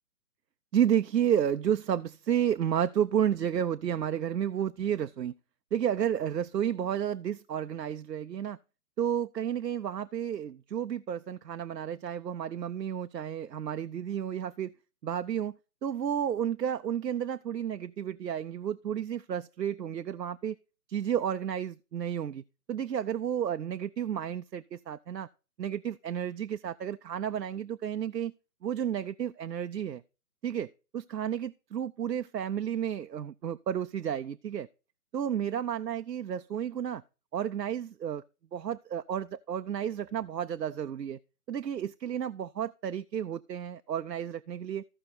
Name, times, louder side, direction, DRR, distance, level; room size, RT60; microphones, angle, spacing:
voice 1, 0.7-5.3 5.7-8.6 9.0-14.7 15.0-15.5 15.8-20.6 20.9-22.4 22.7-25.3 25.6-28.3 28.6-30.0 30.4-34.7 35.1-37.0 37.3-38.2 38.5-41.2 41.5-44.8, right 9 dB, 80° right, 0.6 m, -31 dB
15.0 x 5.4 x 4.1 m
figure-of-eight pair, 145°, 49 cm